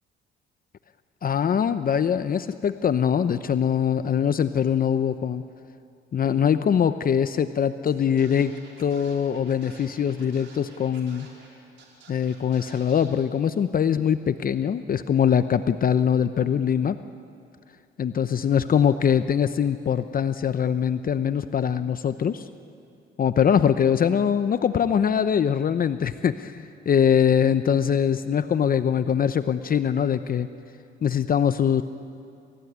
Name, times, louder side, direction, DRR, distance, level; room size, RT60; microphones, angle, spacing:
voice 1, 1.2-5.4 6.1-8.5 8.8-11.3 12.1-17.0 18.0-22.5 23.2-30.5 31.0-31.8, left 8 dB, 45° left, 11 dB, 0.8 m, -22 dB
Scratching (performance technique), 7.9-8.0 8.2-11.5 11.8-13.1, right 4 dB, 70° right, 5.2 m, -50 dB
29.0 x 15.5 x 9.5 m, 2.5 s
cardioid pair, 90°, 20 cm